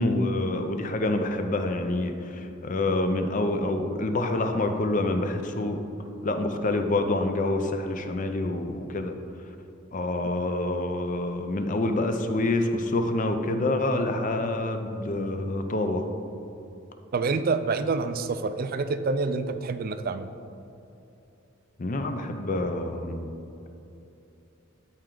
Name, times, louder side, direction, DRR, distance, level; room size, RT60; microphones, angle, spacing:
voice 1, 0.0-5.8 6.2-9.1 9.9-16.1 21.8-23.3, left 2 dB, 40° left, 7 dB, 0.5 m, -27 dB
voice 2, 17.1-20.3, right 4 dB, 45° right, 10 dB, 0.4 m, -27 dB
12.5 x 4.5 x 3.8 m, 2.8 s
head